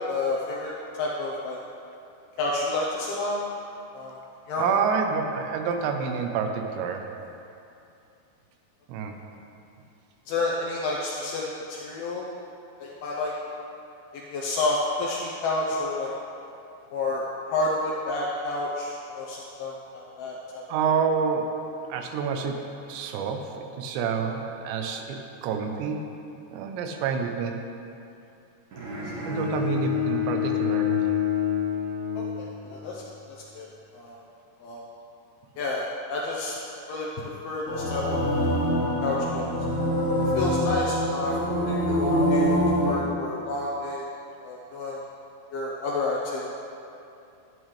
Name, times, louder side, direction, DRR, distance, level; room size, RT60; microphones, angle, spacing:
voice 1, 0.1-1.6 2.4-3.5 3.9-4.1 4.5-4.8 5.4-5.5 10.3-12.3 12.8-13.3 14.2-16.1 16.9-20.6 32.2-33.0 33.5-33.7 33.9-34.2 34.6-34.8 35.6-36.6 36.9-38.2 39.0-39.5 40.3-44.1 44.4-45.0 45.5-46.5, left 2 dB, 80° left, -3 dB, 2.4 m, -30 dB
voice 2, 4.6-7.0 8.9-9.1 20.7-21.5 21.9-22.6 22.9-26.0 26.5-27.5 29.3-31.1, right 6 dB, 85° right, 4 dB, 2.9 m, -28 dB
Bowed string instrument, 28.7-32.9, left 10 dB, 55° right, 2.5 m, -28 dB
sound 1, 37.6-43.0, equal, 45° left, 1.3 m, -25 dB
13.0 x 8.8 x 3.2 m, 2.7 s
omnidirectional pair, 5.1 m